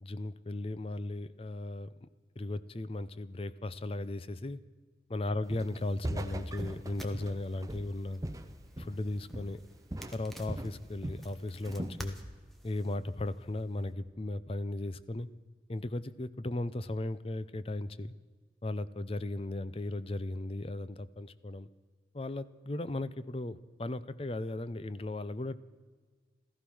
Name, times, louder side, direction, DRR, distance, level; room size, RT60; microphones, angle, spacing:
voice 1, 0.0-2.1 2.4-4.6 5.1-8.2 8.8-9.6 10.1-12.2 12.6-15.3 15.7-18.1 18.6-21.7 22.1-25.6, left 2 dB, 30° left, 16 dB, 0.5 m, -36 dB
Walk footsteps, 5.5-5.8 6.0-9.1 9.3-9.6 9.9-11.3 11.6-12.0, right 1 dB, 20° right, 0.8 m, -39 dB
sound 1, 6.4-13.9, equal, ahead, 1.3 m, -52 dB
15.0 x 15.0 x 6.2 m, 1.5 s
head